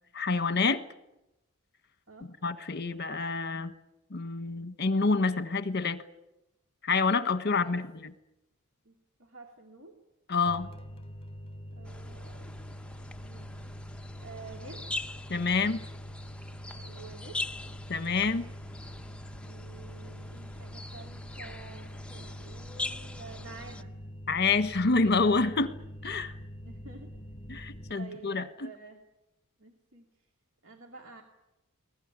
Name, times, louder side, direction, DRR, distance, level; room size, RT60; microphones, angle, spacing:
voice 1, 0.1-0.8 2.4-3.7 4.1-6.0 6.8-7.9 10.3-10.7 15.3-15.8 17.9-18.5 24.3-25.8 26.0-26.3 27.5-28.7, left 4 dB, 50° left, 12 dB, 1.3 m, -27 dB
voice 2, 7.4-7.8 8.8-8.9 9.2-10.0 11.7-12.5 13.2-13.5 14.2-14.9 16.7-17.4 17.7-17.8 19.4-23.9 26.6-27.1 28.0-29.0 29.6-30.0 30.6-31.2, right 4 dB, 65° right, 3 dB, 2.6 m, -49 dB
sound 1, 10.5-27.9, equal, 25° left, 2.5 m, -44 dB
sound 2, 11.8-23.8, left 2 dB, 5° left, 0.8 m, -42 dB
22.0 x 20.0 x 9.9 m, 0.93 s
head